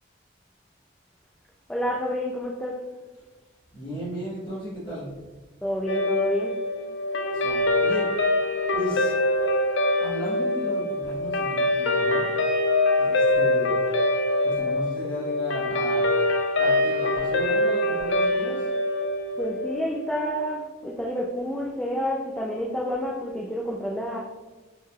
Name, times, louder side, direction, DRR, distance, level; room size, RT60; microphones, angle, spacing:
voice 1, 1.7-2.8 5.6-6.5 19.4-24.2, equal, 5° left, -4 dB, 0.4 m, -29 dB
voice 2, 3.7-5.1 7.3-8.3 8.7-9.2 10.0-12.3 13.0-13.8 14.4-16.1 16.6-18.7, equal, 25° left, -12 dB, 1.3 m, -35 dB
Guitar, 5.9-20.4, left 2 dB, 65° left, 0.5 m, -24 dB
5.4 x 3.2 x 2.3 m, 1.3 s
head